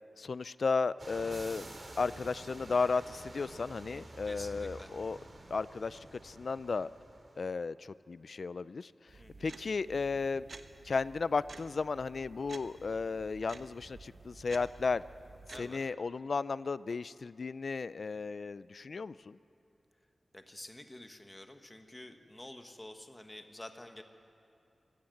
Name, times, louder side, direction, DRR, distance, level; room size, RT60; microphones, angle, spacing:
voice 1, 0.2-1.7 2.0-5.2 5.5-6.9 7.4-8.9 9.4-10.5 10.8-15.0 15.6-19.4, left 4 dB, 60° left, 17 dB, 0.4 m, -34 dB
sound 1, 1.0-7.4, right 2 dB, 40° right, 2.5 m, -49 dB
voice 2, 4.2-4.9 9.2-9.5 15.5-15.9 20.3-24.0, left 1 dB, 15° left, 6 dB, 1.4 m, -49 dB
sound 2, 9.1-15.8, right 3 dB, 60° right, 1.1 m, -52 dB
24.0 x 16.0 x 7.9 m, 2.8 s
wide cardioid pair, 105°, 0 cm